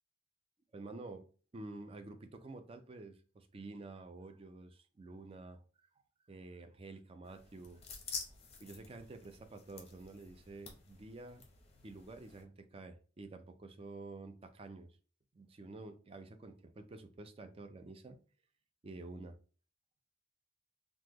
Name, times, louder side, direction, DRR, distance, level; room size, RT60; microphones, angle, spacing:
voice 1, 0.7-1.2 1.5-5.6 6.3-7.8 8.6-11.4 11.8-14.9 15.3-18.2 18.8-19.4, right 2 dB, 30° right, 8 dB, 0.4 m, -49 dB
sound 1, 7.2-12.4, left 5 dB, 35° left, 0.6 m, -49 dB
2.9 x 2.0 x 3.5 m, 0.38 s
head